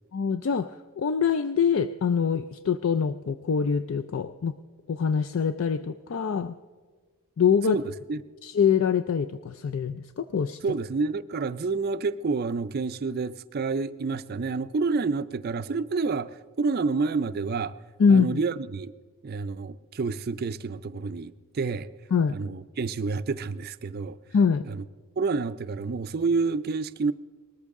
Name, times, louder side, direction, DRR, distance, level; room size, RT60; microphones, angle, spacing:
voice 1, 0.1-4.5 4.9-6.5 7.4-7.8 8.4-10.6 18.0-18.4 22.1-22.4 24.3-24.7, left 6 dB, 60° left, 0.4 m, -24 dB
voice 2, 10.6-17.7 18.1-18.9 19.2-21.9 22.3-24.2 24.6-24.8 25.2-27.1, right 4 dB, 45° right, 0.4 m, -29 dB
19.5 x 13.5 x 3.6 m
head